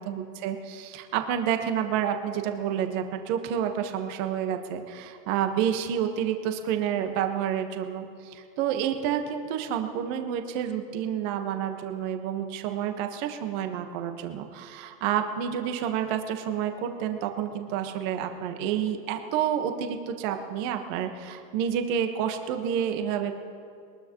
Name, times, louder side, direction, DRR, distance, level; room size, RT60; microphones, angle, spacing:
voice 1, 0.0-23.3, right 9 dB, 50° right, 6 dB, 1.6 m, -29 dB
22.0 x 20.5 x 3.1 m, 2.3 s
hypercardioid pair, 130°, 50 cm